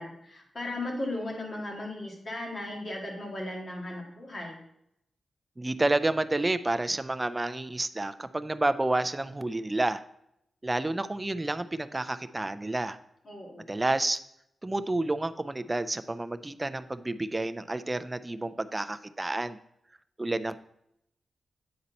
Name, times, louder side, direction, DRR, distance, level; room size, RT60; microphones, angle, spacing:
voice 1, 0.0-4.6 13.3-13.7, left 1 dB, 35° left, -2 dB, 1.9 m, -36 dB
voice 2, 5.6-10.0 10.6-13.0 13.7-14.2 14.6-19.6 20.2-20.6, right 2 dB, 15° right, 11 dB, 0.3 m, -29 dB
8.8 x 4.1 x 4.0 m, 0.78 s
wide cardioid pair, 150°, 0 cm